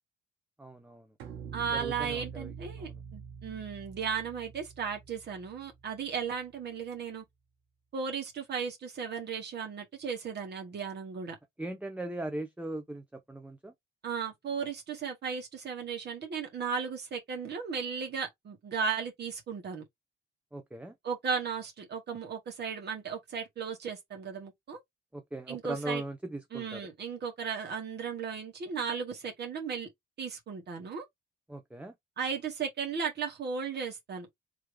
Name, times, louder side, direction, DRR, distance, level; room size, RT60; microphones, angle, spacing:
voice 1, 0.6-1.1 1.7-2.9 11.6-13.7 20.5-20.9 25.1-26.8 31.5-31.9, right 1 dB, 5° right, 0.7 m, -39 dB
sound 1, 1.2-6.4, right 7 dB, 85° right, 1.2 m, -45 dB
voice 2, 1.5-7.2 7.9-11.4 14.0-19.8 21.0-24.8 25.5-26.0 26.5-29.9 30.2-31.0 32.2-34.3, right 6 dB, 55° right, 1.8 m, -35 dB
3.3 x 3.1 x 3.4 m
cardioid pair, 90°, 20 cm